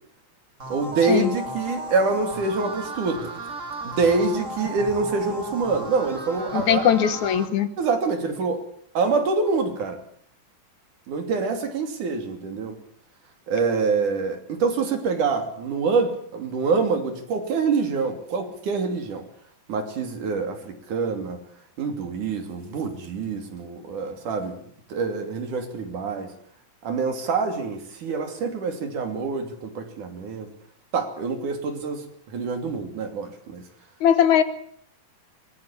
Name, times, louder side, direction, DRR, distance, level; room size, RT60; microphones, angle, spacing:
sound 1, 0.6-7.5, right 1 dB, 25° right, 2.5 m, -35 dB
voice 1, 0.7-3.3 3.8-6.8 7.8-8.6 8.9-10.0 11.1-12.8 13.5-19.3 19.7-21.4 21.8-24.6 24.9-26.3 26.8-30.5 30.9-33.6, right 4 dB, 65° right, 6 dB, 4.3 m, -26 dB
voice 2, 6.5-7.7 34.0-34.4, left 9 dB, 65° left, 12 dB, 2.5 m, -19 dB
23.5 x 20.0 x 7.4 m, 0.63 s
omnidirectional pair, 3.8 m